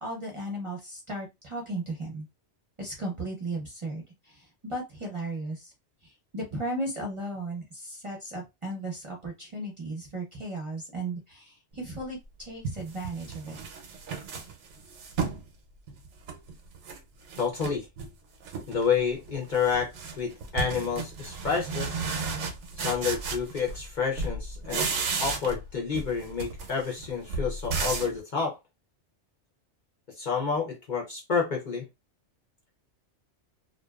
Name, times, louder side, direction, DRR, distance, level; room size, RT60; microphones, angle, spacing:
voice 1, 0.0-2.3 2.8-4.0 4.6-5.6 6.3-13.6, right 1 dB, 30° right, 0.6 m, -35 dB
sound 1, 12.0-12.1 12.6-15.5 15.9-17.0 17.3-18.1 18.4-18.9 19.2-23.9 24.2-25.7 25.9-28.2, right 4 dB, 85° right, 0.9 m, -34 dB
voice 2, 17.4-17.9 18.7-22.0 22.8-24.9 25.2-28.6 30.2-31.9, left 6 dB, 50° left, 0.7 m, -29 dB
2.5 x 2.2 x 2.3 m
omnidirectional pair, 1.2 m